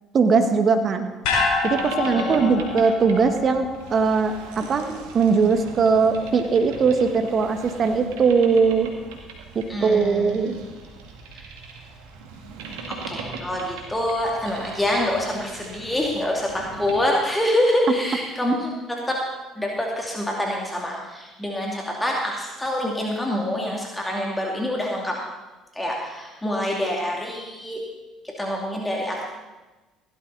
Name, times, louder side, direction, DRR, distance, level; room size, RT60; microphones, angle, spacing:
voice 1, 0.1-1.1 1.6-8.9 9.5-10.6, right 5 dB, 45° right, 7 dB, 1.6 m, -20 dB
sound 1, 1.2-5.6 5.9-6.0, left 4 dB, 75° left, 4.8 m, -28 dB
Boat Water vehicle, 1.4-17.0, right 4 dB, 80° right, 2.1 m, -40 dB
voice 2, 2.1-2.5 9.7-10.6 11.3-11.5 12.9-19.2 19.6-25.2 25.7-27.8 28.2-29.2, left 1 dB, 15° left, -1 dB, 2.6 m, -26 dB
16.0 x 12.0 x 4.1 m, 1.1 s
hypercardioid pair, 60°, 0 cm